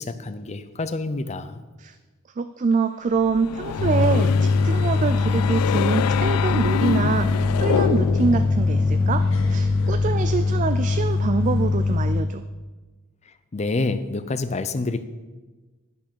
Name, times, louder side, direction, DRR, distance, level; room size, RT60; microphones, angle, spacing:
voice 1, 0.0-1.6 13.5-15.0, left 3 dB, 30° left, 11 dB, 0.5 m, -27 dB
voice 2, 2.4-12.4, right 4 dB, 35° right, 10 dB, 0.3 m, -25 dB
sound 1, 3.2-8.4, left 9 dB, 85° left, 0.3 m, -27 dB
sound 2, 3.8-12.2, left 3 dB, 60° left, 1.0 m, -22 dB
sound 3, 7.0-11.2, left 1 dB, 5° left, 2.0 m, -33 dB
10.5 x 6.3 x 6.1 m, 1.3 s
head